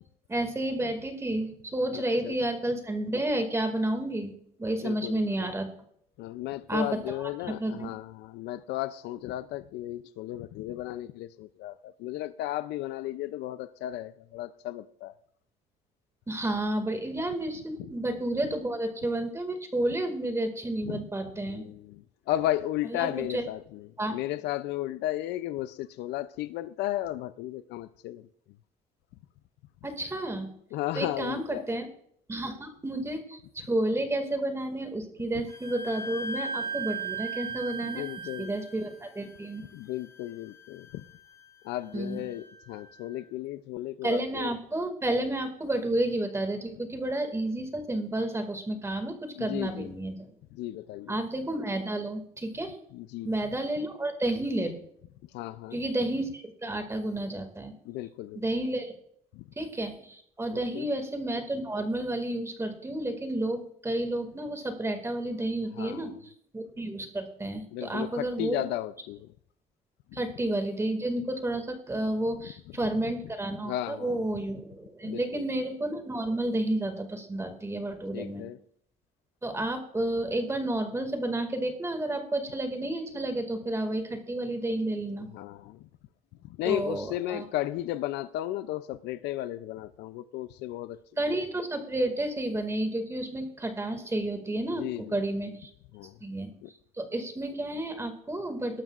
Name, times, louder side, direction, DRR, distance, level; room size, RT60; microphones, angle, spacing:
voice 1, 0.3-4.3 4.6-5.7 6.7-6.9 7.2-7.3 7.6-7.9 16.3-21.6 22.9-23.4 24.0-24.1 29.8-30.5 30.9-31.9 32.3-38.0 38.4-39.7 41.9-42.2 44.0-50.3 51.1-52.8 53.2-54.7 55.7-57.8 58.4-58.9 59.6-66.1 66.5-68.6 70.1-78.4 79.4-85.3 86.7-87.4 91.2-95.7 96.2-96.5 97.0-98.8, right 1 dB, 15° right, 2.1 m, -31 dB
voice 2, 1.9-2.4 4.8-5.5 6.2-15.1 17.8-17.9 20.8-21.0 21.5-28.3 30.7-31.6 37.8-38.6 39.7-41.1 41.6-44.5 49.3-49.9 50.5-51.2 52.9-53.4 55.3-55.8 57.8-58.4 59.3-59.5 60.5-60.9 65.7-66.2 67.7-69.3 70.1-70.2 72.4-72.5 72.8-72.9 73.6-74.4 75.0-75.5 78.1-78.6 85.3-85.9 86.4-91.0 94.7-95.3 95.9-96.2 96.6-96.7, left 14 dB, 85° left, 0.5 m, -35 dB
Wind instrument woodwind instrument, 35.5-42.9, right 4 dB, 15° left, 2.0 m, -39 dB
20.0 x 12.5 x 2.4 m
cardioid pair, 110°, 17 cm